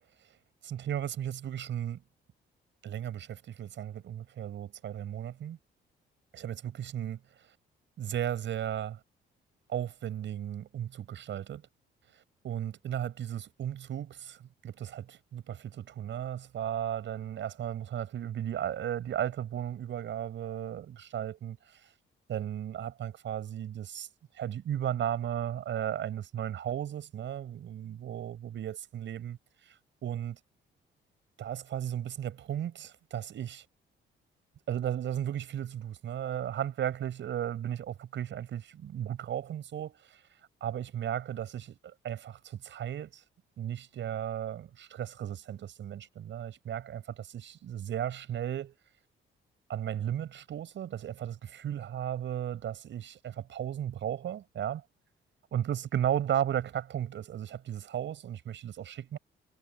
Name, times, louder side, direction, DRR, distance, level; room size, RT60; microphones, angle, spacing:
voice 1, 0.6-2.0 2.8-5.6 6.3-7.2 8.0-9.0 9.7-11.6 12.4-21.6 21.8-21.9 22.3-24.1 24.3-29.4 29.7-29.8 30.0-30.4 31.4-33.6 34.7-40.2 40.6-43.2 43.6-48.7 49.7-54.8 55.5-59.2, right 10 dB, 70° right, 7.7 m, -35 dB
cardioid pair, 90°, 20 cm